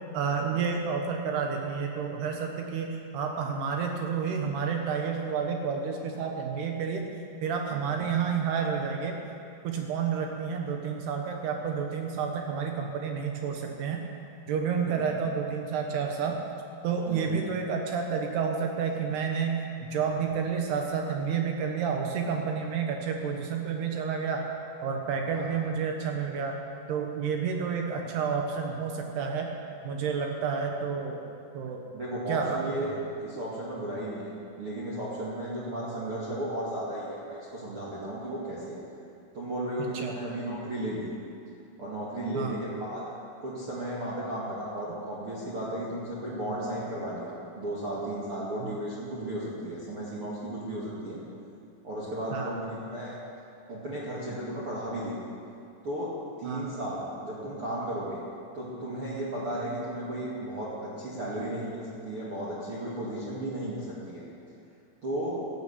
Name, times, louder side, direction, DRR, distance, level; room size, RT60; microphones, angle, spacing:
voice 1, 0.1-7.0 7.4-9.2 9.6-14.0 14.5-16.4 16.8-19.6 19.9-24.5 24.8-26.6 26.9-29.5 29.8-31.2 31.5-31.8 32.3-32.6 39.9-40.2 42.3-42.6 48.6-48.8 52.3-52.6 56.4-56.7, right 6 dB, 70° right, 2 dB, 2.8 m, -30 dB
voice 2, 17.1-17.4 25.3-25.6 31.9-34.3 34.6-38.8 39.3-41.1 41.8-43.0 43.4-51.2 51.8-53.2 53.7-55.2 55.8-58.2 58.5-64.2 65.0-65.4, right 1 dB, 40° right, -8 dB, 2.1 m, -34 dB
13.5 x 11.5 x 8.3 m, 2.5 s
omnidirectional pair, 5.6 m